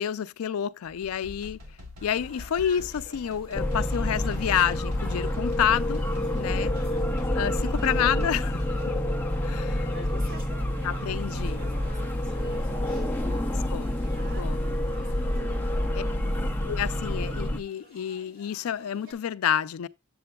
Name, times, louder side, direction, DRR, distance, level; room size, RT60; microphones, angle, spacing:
voice 1, 0.0-1.6 2.0-6.0 6.4-6.7 7.3-8.6 9.4-9.9 10.8-11.6 13.7-13.9 14.4-14.6 15.9-16.0 16.7-19.9, left 9 dB, 85° left, 0.4 m, -29 dB
sound 1, 0.9-9.0, left 2 dB, 75° right, 1.2 m, -44 dB
sound 2, 2.0-19.1, equal, 40° right, 1.7 m, -50 dB
sound 3, 3.5-17.6, left 1 dB, 10° left, 0.6 m, -28 dB
voice 2, 6.5-6.9 9.3-11.2 11.6-16.8, right 1 dB, 60° right, 2.2 m, -46 dB
7.7 x 7.7 x 2.2 m
head